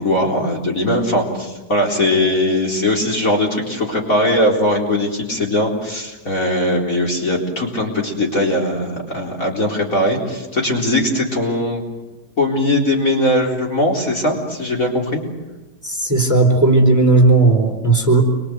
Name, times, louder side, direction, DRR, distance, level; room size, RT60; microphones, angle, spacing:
voice 1, 0.0-11.8 12.4-15.2, left 1 dB, 40° left, 1 dB, 4.5 m, -19 dB
voice 2, 15.8-18.2, right 3 dB, 10° right, 2 dB, 4.2 m, -14 dB
29.5 x 24.0 x 8.1 m, 1.1 s
omnidirectional pair, 2.1 m